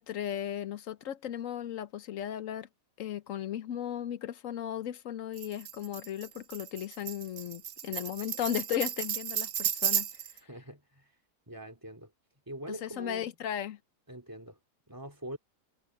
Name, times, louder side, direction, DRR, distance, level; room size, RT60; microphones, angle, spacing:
voice 1, 0.0-2.7 3.0-10.1 12.7-13.8, left 10 dB, 60° left, 1.0 m, -36 dB
Tambourine, 5.4-10.4, right 9 dB, 60° right, 0.6 m, -33 dB
voice 2, 10.4-11.2 11.5-12.1 12.5-13.3 14.1-14.6 14.9-15.4, right 1 dB, 10° right, 2.7 m, -43 dB
omnidirectional pair, 1.7 m